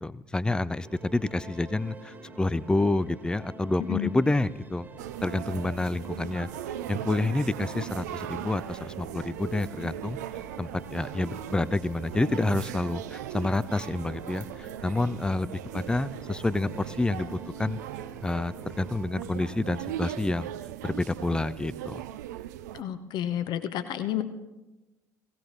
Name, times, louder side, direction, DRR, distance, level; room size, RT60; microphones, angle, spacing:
voice 1, 0.0-4.9 5.2-6.5 6.9-10.2 10.6-17.8 18.2-20.5 20.8-22.0, left 2 dB, 10° left, 18 dB, 0.5 m, -28 dB
sound 1, 0.8-19.1, right 3 dB, 20° right, 1.5 m, -47 dB
sound 2, 5.0-22.8, right 12 dB, 70° right, 0.5 m, -39 dB
voice 2, 22.7-24.2, left 11 dB, 50° left, 10 dB, 0.9 m, -30 dB
17.0 x 16.5 x 3.3 m, 1.1 s
figure-of-eight pair, 60°, 10 cm